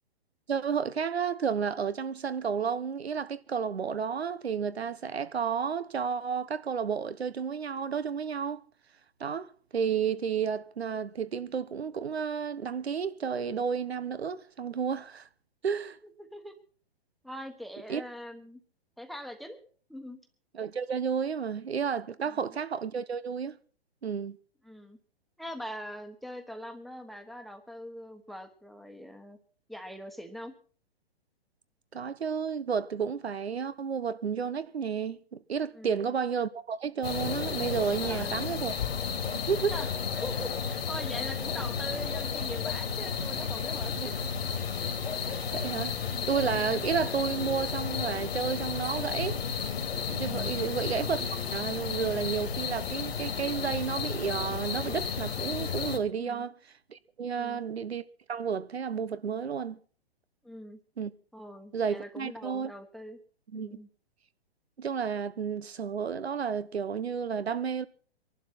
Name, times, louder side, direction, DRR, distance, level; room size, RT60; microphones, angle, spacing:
voice 1, 0.5-8.6 9.2-15.3 15.6-16.0 17.9-18.0 20.5-23.6 24.0-24.4 31.9-38.7 39.3-39.7 44.0-44.1 45.3-49.4 50.1-56.5 56.9-58.0 58.3-59.8 61.0-61.1 61.7-62.7 63.5-63.7 64.8-67.9, right 6 dB, 90° right, 1.2 m, -31 dB
voice 2, 16.0-16.5 17.2-18.6 19.0-19.6 19.9-20.2 22.2-22.6 24.6-25.0 25.4-29.4 29.7-30.5 35.7-36.1 38.0-38.3 39.7-39.9 40.2-44.1 50.5-50.8 56.2-56.4 57.3-57.6 60.4-60.8 61.3-63.2 63.5-63.9, equal, ahead, 1.2 m, -42 dB
sound 1, 37.0-56.0, left 6 dB, 70° left, 2.7 m, -33 dB
23.5 x 11.5 x 4.4 m
hypercardioid pair, 135°, 31 cm